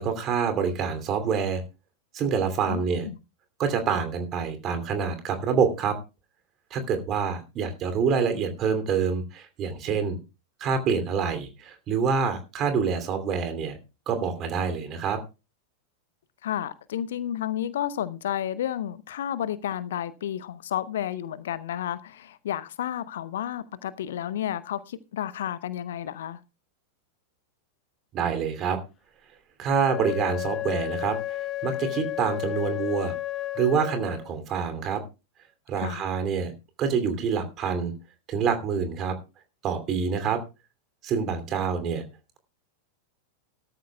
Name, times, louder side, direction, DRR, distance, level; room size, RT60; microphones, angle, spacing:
voice 1, 0.0-1.6 2.1-3.1 3.6-5.9 6.7-10.2 10.6-13.8 14.1-15.2 28.1-28.8 29.6-33.1 33.6-35.0 35.7-36.5 36.8-37.9 38.3-39.1 39.6-40.4 41.0-42.0, right 6 dB, 30° right, 2.8 m, -26 dB
voice 2, 2.6-3.2 16.4-26.4 35.8-36.1, left 10 dB, 60° left, 0.8 m, -31 dB
Wind instrument woodwind instrument, 29.7-34.3, left 14 dB, 30° left, 1.1 m, -32 dB
17.5 x 13.5 x 2.3 m
figure-of-eight pair, 90°, 0 cm